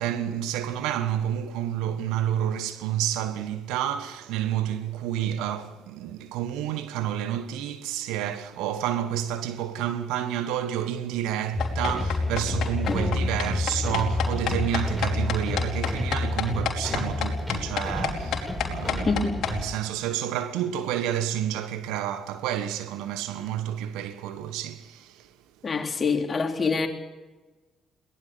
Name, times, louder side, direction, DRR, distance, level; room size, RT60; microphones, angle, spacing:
voice 1, 0.0-25.3, right 11 dB, 75° right, 1.4 m, -29 dB
sound 1, 11.5-19.6, left 2 dB, 5° left, 6.6 m, -29 dB
sound 2, 11.6-19.5, left 9 dB, 65° left, 3.4 m, -29 dB
voice 2, 12.9-13.4 19.1-19.4 25.6-26.9, left 4 dB, 40° left, 3.5 m, -26 dB
22.5 x 18.5 x 7.0 m
hypercardioid pair, 45°, 0 cm